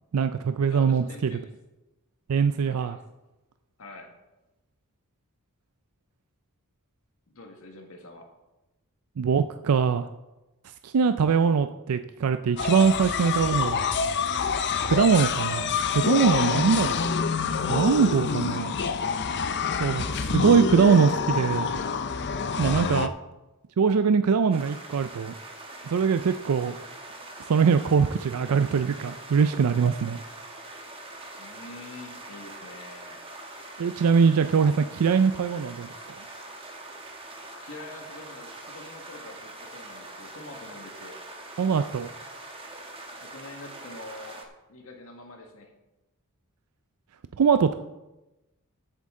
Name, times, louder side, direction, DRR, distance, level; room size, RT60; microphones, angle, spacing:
voice 1, 0.1-1.3 2.3-3.0 9.2-10.1 10.8-13.9 14.8-17.1 17.7-18.7 19.8-20.1 20.3-21.7 22.6-23.1 23.8-25.3 25.9-26.8 27.5-30.2 33.8-35.9 41.6-42.1 47.4-47.7, right 6 dB, 80° right, 10 dB, 0.4 m, -22 dB
voice 2, 0.7-1.5 2.6-3.0 3.8-4.1 7.3-8.3 17.8-19.0 19.9-20.5 22.6-23.0 31.4-33.2 37.6-41.2 43.2-45.7, left 2 dB, 65° left, 3 dB, 1.5 m, -45 dB
sound 1, 12.6-23.1, left 5 dB, 50° left, 0.6 m, -27 dB
sound 2, 24.5-44.5, right 2 dB, 25° right, 1.3 m, -43 dB
13.5 x 8.2 x 3.7 m, 1.0 s
head